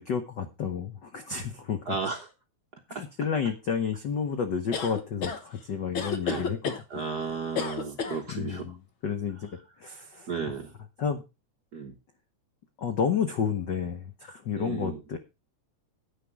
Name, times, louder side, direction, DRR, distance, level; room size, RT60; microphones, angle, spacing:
voice 1, 0.0-2.0 2.9-7.0 8.3-9.5 9.8-10.3 11.0-11.2 12.8-15.2, left 7 dB, 80° left, 7 dB, 0.9 m, -31 dB
voice 2, 1.9-2.3 2.9-3.0 6.2-6.5 6.9-8.7 10.3-10.7 11.7-11.9 14.6-15.0, right 5 dB, 70° right, 4 dB, 0.9 m, -33 dB
sound 1, 4.7-5.4 5.9-6.8 7.6-8.2, left 5 dB, 55° left, 1.6 m, -31 dB
10.0 x 9.2 x 4.6 m, 0.27 s
omnidirectional pair, 3.5 m